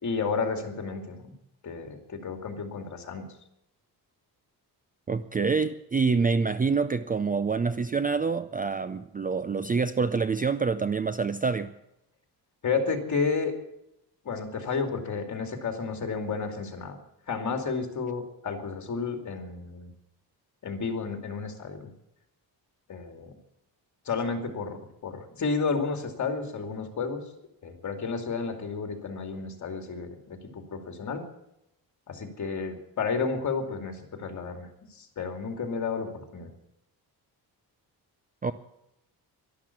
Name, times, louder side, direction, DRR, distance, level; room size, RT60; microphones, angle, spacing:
voice 1, 0.0-1.3 1.6-3.3 12.6-13.6 14.2-17.0 17.3-19.9 20.6-21.9 22.9-23.3 24.0-27.2 27.6-31.2 32.1-36.5, left 4 dB, 45° left, 5 dB, 2.7 m, -31 dB
voice 2, 5.1-11.7 38.4-38.5, right 5 dB, 20° right, 13 dB, 0.4 m, -26 dB
12.0 x 12.0 x 8.5 m, 0.83 s
cardioid pair, 135°, 40 cm